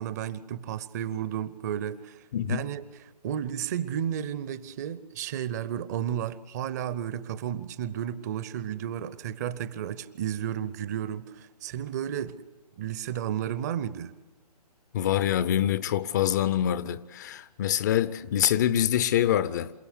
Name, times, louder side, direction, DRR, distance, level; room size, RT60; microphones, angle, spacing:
voice 1, 0.0-2.2 2.5-2.8 3.2-12.3 12.8-14.1, right 10 dB, 25° right, 0.8 m, -32 dB
voice 2, 2.3-2.7 14.9-19.7, left 11 dB, 25° left, 0.7 m, -25 dB
28.0 x 17.0 x 8.3 m
figure-of-eight pair, 135°, 20 cm